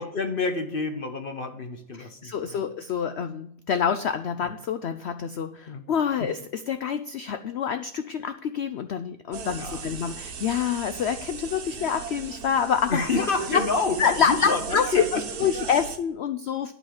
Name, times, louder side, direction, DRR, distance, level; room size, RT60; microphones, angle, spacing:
voice 1, 0.0-2.6 4.4-4.5 5.7-5.9 6.2-6.3 9.6-10.2 12.9-15.2, left 4 dB, 45° left, 6 dB, 0.8 m, -29 dB
voice 2, 2.0-13.0 13.5-13.6 14.0-14.9 15.1-16.7, left 7 dB, 90° left, 9 dB, 0.5 m, -27 dB
sound 1, 9.3-16.0, right 6 dB, 65° right, 1.6 m, -36 dB
11.5 x 4.0 x 7.4 m, 0.74 s
omnidirectional pair, 1.7 m